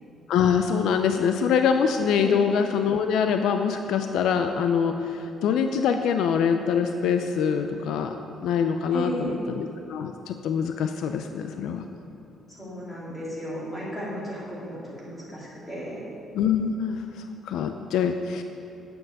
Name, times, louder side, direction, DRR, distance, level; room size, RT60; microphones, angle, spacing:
voice 1, 0.3-8.1 8.4-11.8 16.3-18.4, left 7 dB, 75° left, 6 dB, 0.5 m, -24 dB
voice 2, 8.9-9.4 12.5-16.0 16.5-16.6, equal, 15° left, -7 dB, 2.7 m, -34 dB
9.7 x 7.1 x 6.6 m, 2.8 s
cardioid pair, 175°, 0 cm